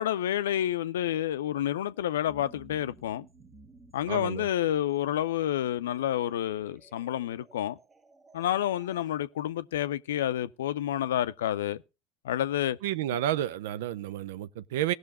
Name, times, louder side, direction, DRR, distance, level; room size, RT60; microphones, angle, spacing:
voice 1, 0.0-3.3 3.9-7.8 8.3-11.8 12.2-12.8, left 11 dB, 70° left, 0.5 m, -29 dB
sound 1, 2.3-9.1, right 3 dB, 25° right, 1.4 m, -56 dB
voice 2, 4.1-4.5 12.8-14.9, right 12 dB, 65° right, 0.5 m, -31 dB
18.5 x 6.4 x 4.2 m
figure-of-eight pair, 65°, 0 cm